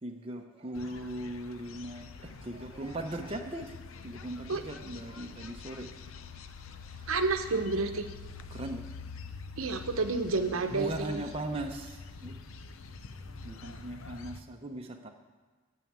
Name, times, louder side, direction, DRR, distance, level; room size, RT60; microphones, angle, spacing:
voice 1, 0.0-3.7 4.0-5.9 6.9-7.1 8.5-8.9 10.7-12.4 13.4-15.1, right 1 dB, 25° right, 3 dB, 0.7 m, -39 dB
sound 1, 0.7-14.4, left 4 dB, 80° left, 0.6 m, -46 dB
voice 2, 7.1-8.1 9.6-11.2, right 3 dB, 90° right, 6 dB, 0.9 m, -30 dB
9.1 x 7.2 x 8.7 m, 1.4 s
head